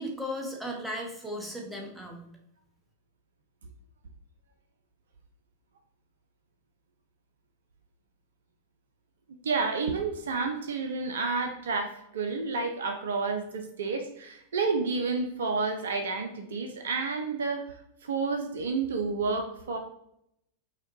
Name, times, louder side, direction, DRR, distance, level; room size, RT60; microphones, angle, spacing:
voice 1, 0.0-2.2, equal, 5° right, 0 dB, 0.8 m, -36 dB
voice 2, 9.4-19.8, right 4 dB, 65° right, 6 dB, 0.4 m, -30 dB
5.6 x 2.2 x 2.9 m, 0.77 s
figure-of-eight pair, 90°, 0 cm